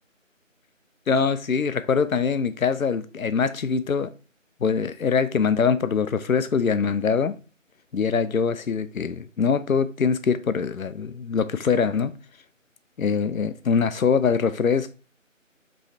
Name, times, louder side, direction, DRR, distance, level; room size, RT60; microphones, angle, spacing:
voice 1, 1.1-4.1 4.6-7.3 7.9-12.1 13.0-14.9, left 6 dB, 85° left, 0.6 m, -23 dB
5.4 x 3.2 x 2.7 m
figure-of-eight pair, 170°, 40 cm